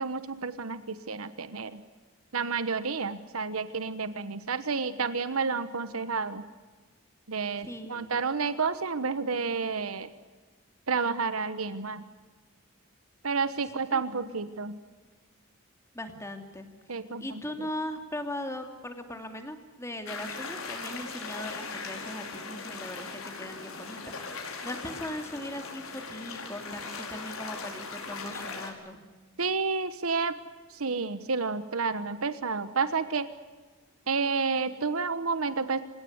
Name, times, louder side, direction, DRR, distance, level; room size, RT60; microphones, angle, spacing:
voice 1, 0.0-1.8 2.3-6.4 7.3-10.1 10.9-12.0 13.2-14.8 16.9-17.7 29.4-30.3 30.7-33.3 34.1-35.8, right 4 dB, 90° right, 12 dB, 1.2 m, -30 dB
voice 2, 7.6-8.2 13.9-14.0 15.9-16.7 17.2-29.0, left 1 dB, 15° left, 6 dB, 2.7 m, -39 dB
sound 1, 20.1-28.7, left 4 dB, 85° left, 5.0 m, -39 dB
27.0 x 17.5 x 9.7 m, 1.3 s
head